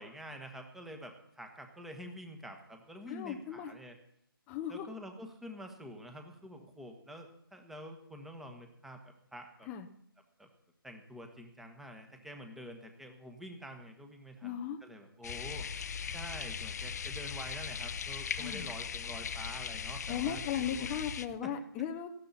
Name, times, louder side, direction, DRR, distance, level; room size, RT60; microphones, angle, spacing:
voice 1, 0.0-4.0 4.7-9.7 10.4-10.5 10.8-15.7 16.1-20.9 21.4-21.5, equal, ahead, 5 dB, 1.4 m, -47 dB
voice 2, 3.1-3.7 4.5-4.9 9.7-9.9 14.4-14.8 18.4-18.7 20.1-22.1, left 9 dB, 15° left, 5 dB, 0.7 m, -37 dB
sound 1, 15.2-21.3, left 7 dB, 45° left, 0.8 m, -39 dB
18.0 x 14.5 x 4.3 m, 0.71 s
figure-of-eight pair, 155°, 12 cm